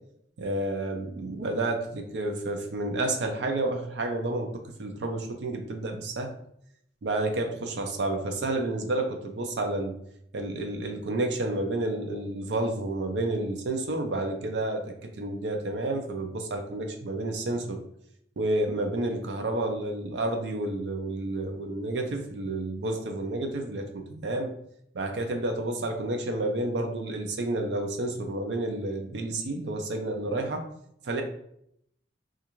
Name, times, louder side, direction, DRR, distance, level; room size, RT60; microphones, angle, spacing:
voice 1, 0.4-6.3 7.0-10.0 10.3-17.8 18.4-24.5 24.9-30.7 31.0-31.2, right 2 dB, 65° right, 4 dB, 0.5 m, -30 dB
2.4 x 2.4 x 2.9 m, 0.70 s
head